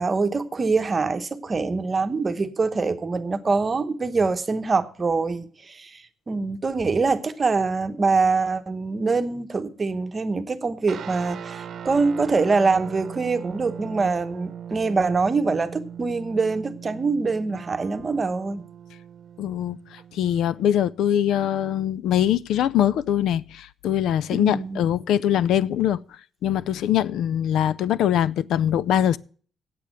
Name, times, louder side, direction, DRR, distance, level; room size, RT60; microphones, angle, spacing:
voice 1, 0.0-18.6 24.3-24.8, right 4 dB, 25° right, 1.0 m, -24 dB
sound 1, 10.9-20.6, right 8 dB, 50° right, 0.8 m, -39 dB
voice 2, 19.4-26.0 26.4-29.2, left 10 dB, 90° left, 0.4 m, -22 dB
8.5 x 8.4 x 7.5 m
cardioid pair, 145°, 0 cm